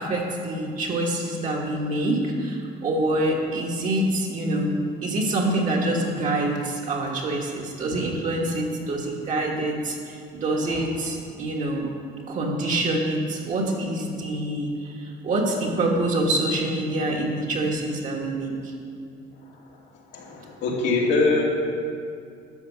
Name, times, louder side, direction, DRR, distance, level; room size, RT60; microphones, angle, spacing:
voice 1, 0.0-4.7 5.0-11.9 12.3-18.7, right 1 dB, 45° right, -1 dB, 1.5 m, -26 dB
voice 2, 10.7-11.1 20.1-21.4, left 3 dB, 85° left, -2 dB, 2.3 m, -24 dB
12.0 x 6.8 x 6.0 m, 2.4 s
cardioid pair, 160°, 18 cm